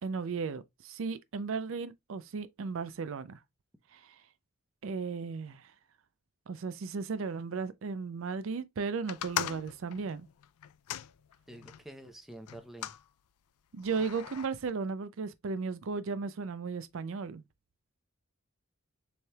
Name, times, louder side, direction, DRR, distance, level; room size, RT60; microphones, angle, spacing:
voice 1, 0.0-3.4 3.9-4.2 4.8-5.7 6.5-10.3 13.7-17.4, right 4 dB, 60° right, 0.4 m, -35 dB
sound 1, 9.1-11.8 12.5-13.0 13.8-14.5, left 11 dB, 90° left, 0.4 m, -39 dB
voice 2, 11.5-12.9, right 1 dB, ahead, 0.6 m, -48 dB
6.9 x 3.3 x 2.3 m
head